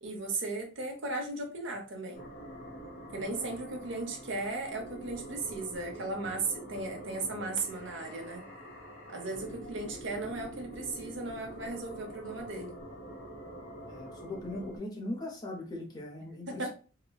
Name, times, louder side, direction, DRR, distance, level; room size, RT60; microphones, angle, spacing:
voice 1, 0.0-2.2 3.1-8.4 9.1-12.8 16.5-16.7, right 3 dB, 70° right, 2 dB, 0.8 m, -36 dB
sound 1, 2.1-14.8, right 1 dB, 50° left, 1.5 m, -46 dB
voice 2, 3.1-3.5 9.2-9.5 13.9-16.7, left 1 dB, 20° left, 0 dB, 0.6 m, -40 dB
3.9 x 2.1 x 2.3 m, 0.36 s
head